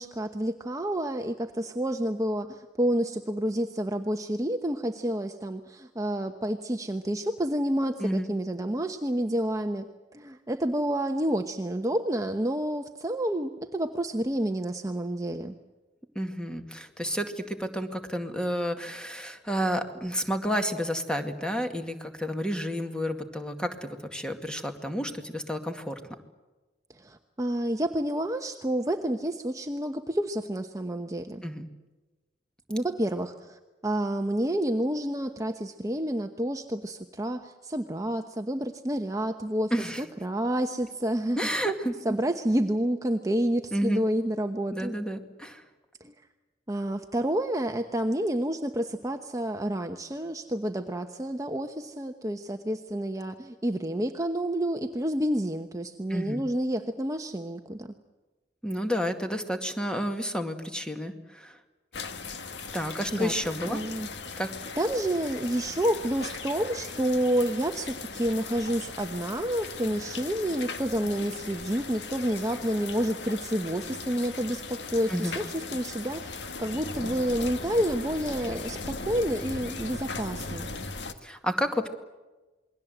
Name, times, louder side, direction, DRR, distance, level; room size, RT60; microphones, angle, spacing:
voice 1, 0.0-9.9 10.1-15.5 27.0-31.4 32.7-39.7 40.0-41.4 42.0-44.9 46.0-46.1 46.7-57.9 63.1-63.3 63.7-64.1 64.8-80.7, right 1 dB, 20° right, 5 dB, 1.0 m, -29 dB
voice 2, 8.0-8.3 16.2-26.0 31.4-31.7 39.7-40.0 41.4-42.2 43.7-44.0 44.7-45.6 56.1-56.4 58.6-61.6 62.7-63.8 64.4-64.5 75.1-75.4 81.2-81.9, equal, 5° left, 5 dB, 2.2 m, -30 dB
sound 1, 61.9-81.1, left 4 dB, 70° left, 1.9 m, -38 dB
28.0 x 21.5 x 8.0 m, 1.2 s
head